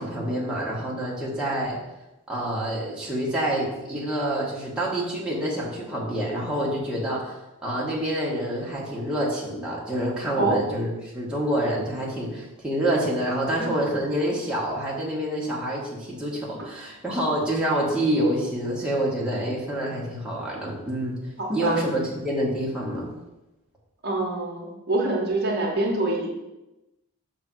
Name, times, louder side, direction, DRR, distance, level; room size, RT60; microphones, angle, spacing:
voice 1, 0.0-1.8 2.3-10.9 11.1-21.2 21.5-23.1, right 1 dB, 5° right, -6 dB, 1.4 m, -27 dB
voice 2, 21.4-21.8 24.0-26.3, right 2 dB, 45° right, -1 dB, 1.1 m, -25 dB
6.5 x 3.4 x 6.1 m, 0.98 s
head